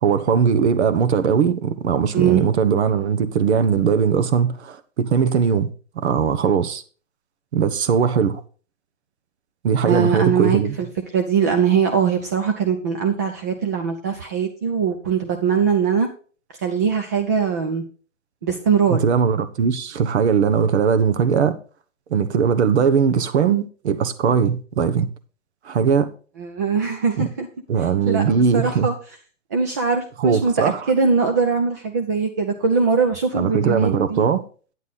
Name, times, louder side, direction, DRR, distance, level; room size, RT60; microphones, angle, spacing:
voice 1, 0.0-5.7 6.0-6.8 7.5-8.4 9.6-10.7 18.9-21.6 22.1-25.1 25.7-26.1 27.2-27.3 27.7-28.9 30.2-30.8 33.3-34.4, right 6 dB, 60° right, 1.2 m, -19 dB
voice 2, 2.1-2.5 9.9-10.9 11.1-16.1 16.6-17.8 18.4-19.0 26.4-27.5 27.8-28.9 29.5-34.3, right 6 dB, 15° right, 0.3 m, -21 dB
9.6 x 8.2 x 4.0 m
hypercardioid pair, 140°, 37 cm